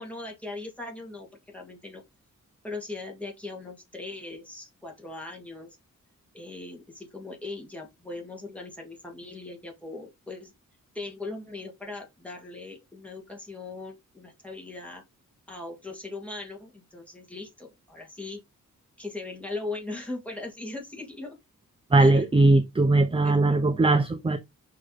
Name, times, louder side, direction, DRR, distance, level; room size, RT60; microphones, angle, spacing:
voice 1, 0.0-2.0 2.6-5.8 6.3-10.5 10.9-15.0 15.5-18.4 19.0-21.4 22.0-22.5 23.2-23.8, left 2 dB, 5° left, 2.2 m, -39 dB
voice 2, 21.9-24.4, right 2 dB, 15° right, 0.5 m, -20 dB
5.3 x 4.8 x 4.0 m
wide cardioid pair, 160°, 32 cm